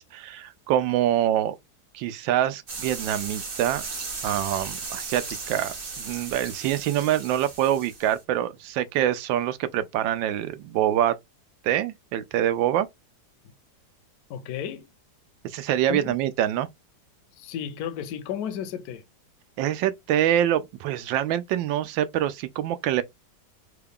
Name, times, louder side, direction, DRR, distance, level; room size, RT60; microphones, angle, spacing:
voice 1, 0.0-1.6 1.9-3.8 4.2-11.1 11.6-12.9 15.4-16.7 19.6-23.0, right 11 dB, 85° right, 1.3 m, -25 dB
sound 1, 2.7-8.2, right 4 dB, 50° right, 0.7 m, -36 dB
voice 2, 14.3-14.9 15.9-16.1 17.4-19.0, left 8 dB, 70° left, 1.0 m, -33 dB
3.7 x 2.3 x 3.5 m
omnidirectional pair, 2.0 m